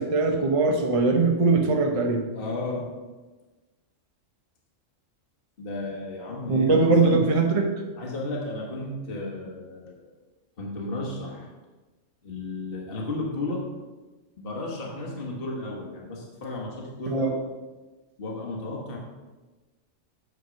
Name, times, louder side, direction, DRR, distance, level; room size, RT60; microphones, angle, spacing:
voice 1, 0.0-2.2 6.5-7.7 17.1-17.3, right 3 dB, 30° right, 2 dB, 0.8 m, -21 dB
voice 2, 2.3-3.1 5.6-7.3 8.0-10.1 10.6-11.5 12.2-13.7 14.4-17.4 18.2-19.0, left 2 dB, 50° left, -2 dB, 1.4 m, -33 dB
8.2 x 4.5 x 6.2 m, 1.2 s
omnidirectional pair, 1.3 m